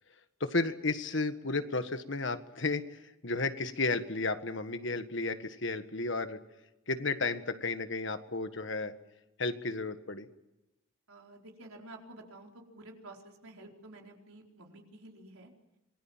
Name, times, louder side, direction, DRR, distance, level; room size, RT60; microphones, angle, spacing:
voice 1, 0.4-6.4 6.9-8.9 9.4-10.3, left 3 dB, 55° left, 9 dB, 1.6 m, -33 dB
voice 2, 11.1-15.5, right 2 dB, 85° right, 1 dB, 4.5 m, -51 dB
26.5 x 20.5 x 7.4 m, 0.96 s
head